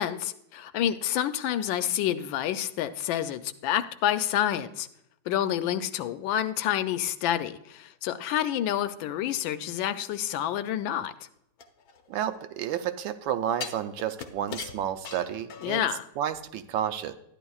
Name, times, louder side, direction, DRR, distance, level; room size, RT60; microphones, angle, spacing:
voice 1, 0.0-4.9 5.3-11.1 15.6-16.1, left 11 dB, 85° left, 11 dB, 1.3 m, -28 dB
sound 1, 11.6-12.8 13.6-16.0 16.3-16.4, left 6 dB, 65° left, 1.1 m, -40 dB
voice 2, 12.1-15.8 16.2-17.1, right 10 dB, 85° right, 9 dB, 1.4 m, -31 dB
12.5 x 10.0 x 2.3 m, 0.77 s
omnidirectional pair, 2.0 m